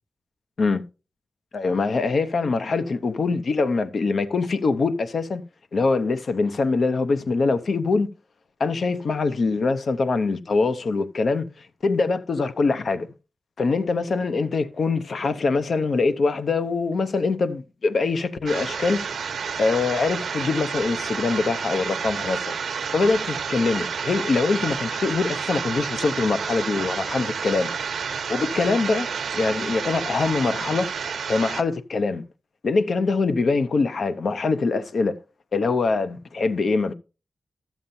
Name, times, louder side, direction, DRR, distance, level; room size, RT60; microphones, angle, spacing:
voice 1, 1.5-5.4 5.7-8.1 8.6-13.1 13.6-19.1 19.6-22.5 22.9-27.7 28.3-30.9 31.3-32.2 32.6-35.2 35.5-36.9, left 4 dB, 65° left, 0.7 m, -23 dB
sound 1, 18.5-31.6, right 6 dB, 85° right, 0.8 m, -30 dB
13.0 x 7.2 x 2.7 m
cardioid pair, 65°, 0 cm